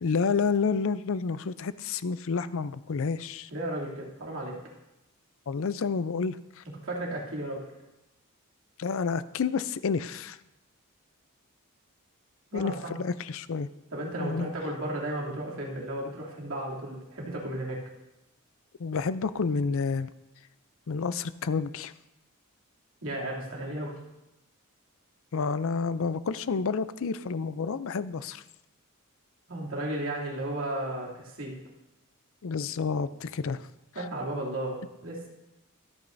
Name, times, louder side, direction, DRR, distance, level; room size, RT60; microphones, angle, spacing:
voice 1, 0.0-3.5 5.5-6.6 8.8-10.4 12.5-13.7 14.2-14.5 18.8-20.1 20.9-21.9 25.3-28.4 32.4-33.7 34.0-34.1, left 5 dB, 65° left, 15 dB, 0.5 m, -29 dB
voice 2, 3.5-4.6 6.8-7.6 12.5-13.0 13.9-17.8 23.0-23.9 29.5-31.5 33.9-35.3, right 1 dB, 65° right, -2 dB, 2.8 m, -34 dB
24.0 x 8.8 x 2.7 m, 0.94 s
head